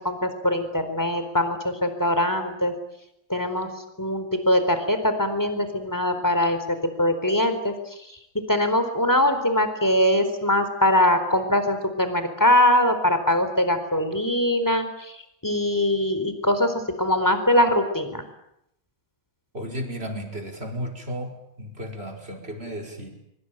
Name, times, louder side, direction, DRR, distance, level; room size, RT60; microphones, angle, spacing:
voice 1, 0.0-2.7 3.3-3.7 4.0-8.2 8.5-18.2, left 1 dB, 10° left, 9 dB, 4.1 m, -22 dB
voice 2, 19.5-23.1, equal, 30° right, 2 dB, 5.4 m, -34 dB
25.0 x 24.5 x 9.2 m, 0.81 s
omnidirectional pair, 2.1 m